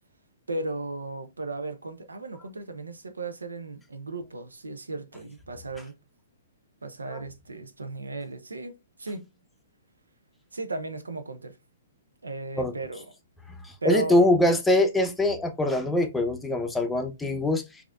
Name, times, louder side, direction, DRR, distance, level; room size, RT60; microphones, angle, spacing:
voice 1, 0.5-6.0 6.8-9.3 10.5-11.6 12.2-13.0 13.8-14.3, right 2 dB, 90° right, 0.7 m, -35 dB
voice 2, 13.6-17.8, left 1 dB, 5° left, 0.7 m, -23 dB
4.8 x 2.8 x 2.4 m
hypercardioid pair, 125°, 0 cm